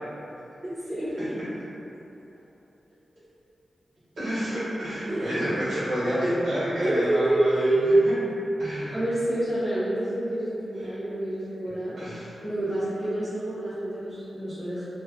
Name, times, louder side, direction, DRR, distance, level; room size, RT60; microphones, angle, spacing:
voice 1, 0.6-1.4 5.1-5.3 6.8-8.1 8.9-12.0 12.4-14.8, right 1 dB, 30° right, -19 dB, 1.3 m, -26 dB
voice 2, 4.2-8.1 8.6-8.9 10.8-11.0 12.0-12.3, equal, 85° right, -12 dB, 1.3 m, -29 dB
3.1 x 2.4 x 2.5 m, 3.0 s
wide cardioid pair, 110°, 0 cm